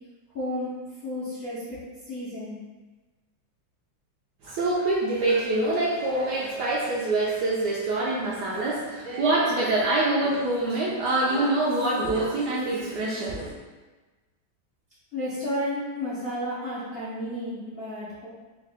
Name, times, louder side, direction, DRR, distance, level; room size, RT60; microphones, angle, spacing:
voice 1, 0.3-0.7 1.0-1.8 2.1-2.6 15.1-18.3, left 1 dB, 50° left, -11 dB, 0.7 m, -32 dB
voice 2, 4.4-13.5, right 2 dB, 70° right, -5 dB, 1.0 m, -25 dB
3.7 x 2.5 x 3.4 m, 1.2 s
omnidirectional pair, 2.2 m